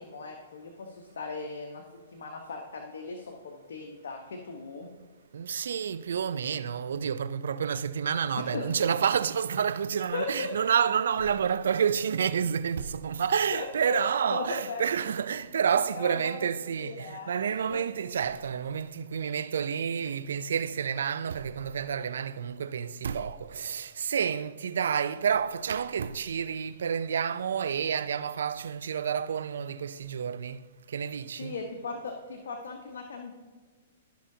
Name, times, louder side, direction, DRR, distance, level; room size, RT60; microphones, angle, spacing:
voice 1, 0.0-1.8 2.1-4.9 8.5-8.6 10.1-10.5 13.5-14.0 14.3-14.8 15.9-17.8 31.4-33.3, left 4 dB, 75° left, 1.0 m, -38 dB
voice 2, 5.3-31.6, right 7 dB, 75° right, 0.4 m, -29 dB
14.0 x 5.7 x 2.7 m
hypercardioid pair, 130°, 0 cm